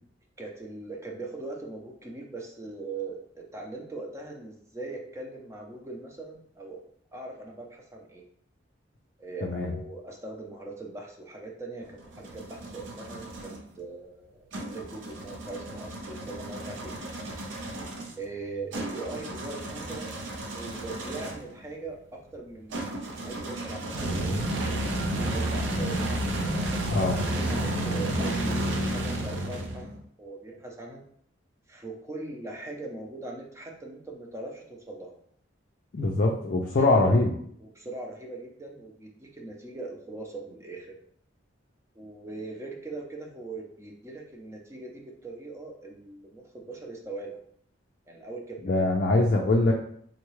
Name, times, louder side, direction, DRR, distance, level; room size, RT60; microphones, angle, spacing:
voice 1, 0.4-6.8 7.1-8.2 9.2-13.5 13.8-17.0 18.2-20.2 20.5-23.0 23.3-26.0 26.6-31.0 31.7-35.2 36.8-37.2 37.6-40.9 42.0-47.4 48.1-48.6, right 2 dB, 15° right, 0 dB, 0.6 m, -40 dB
voice 2, 9.4-9.7 26.9-27.2 35.9-37.4 48.6-49.7, left 2 dB, 50° left, 0 dB, 0.4 m, -23 dB
sound 1, 11.8-13.6 14.5-21.5 22.7-30.0, right 1 dB, 75° right, 0.6 m, -32 dB
3.8 x 2.3 x 3.1 m, 0.63 s
head